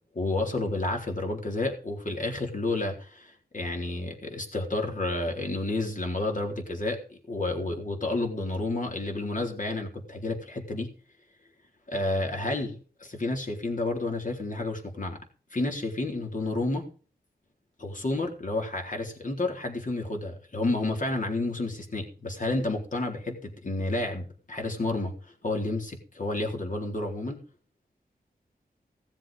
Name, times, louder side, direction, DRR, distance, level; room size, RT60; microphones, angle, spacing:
voice 1, 0.1-10.9 11.9-15.2 15.5-16.9 17.8-25.1 25.4-27.4, left 2 dB, 50° left, 3 dB, 4.0 m, -30 dB
17.5 x 7.5 x 5.1 m, 0.39 s
wide cardioid pair, 70°, 17 cm